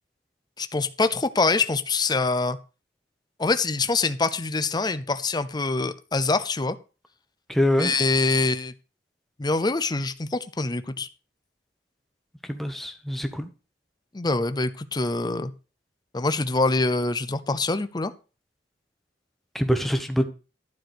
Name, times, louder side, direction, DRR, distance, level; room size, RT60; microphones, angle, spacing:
voice 1, 0.6-2.6 3.4-6.8 7.7-8.7 9.4-11.1 14.1-15.5 16.1-18.1, left 3 dB, 25° left, 0.6 m, -25 dB
voice 2, 7.5-7.9 12.5-13.5 19.5-20.3, equal, ahead, 1.1 m, -24 dB
12.0 x 4.8 x 6.2 m
head